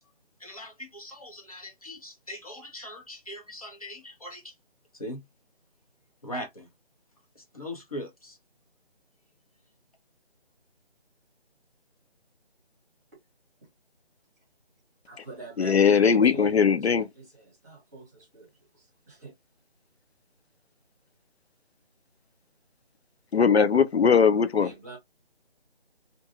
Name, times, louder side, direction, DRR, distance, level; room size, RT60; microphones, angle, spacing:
voice 1, 0.4-4.6 4.9-5.2 6.2-6.7 7.3-8.4, left 1 dB, 35° left, 0.6 m, -40 dB
voice 2, 15.1-19.3 24.6-25.0, right 2 dB, 15° right, 1.0 m, -45 dB
voice 3, 15.6-17.1 23.3-24.7, left 6 dB, 75° left, 0.5 m, -20 dB
2.6 x 2.2 x 2.7 m
figure-of-eight pair, 155°, 32 cm